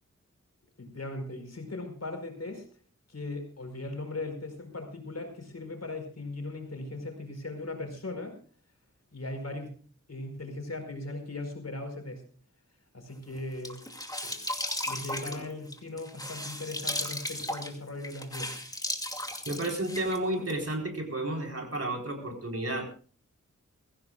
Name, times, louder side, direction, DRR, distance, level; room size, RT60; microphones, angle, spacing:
voice 1, 0.8-2.7 3.1-8.4 9.1-9.8 10.1-12.2 12.9-13.8 14.2-14.4 14.9-18.6, left 2 dB, 55° left, 5 dB, 4.8 m, -38 dB
sound 1, 13.3-20.6, left 1 dB, 10° left, 2.4 m, -36 dB
voice 2, 19.5-22.8, right 1 dB, 50° right, 2 dB, 4.3 m, -32 dB
23.0 x 16.0 x 2.4 m, 0.39 s
wide cardioid pair, 70°, 30 cm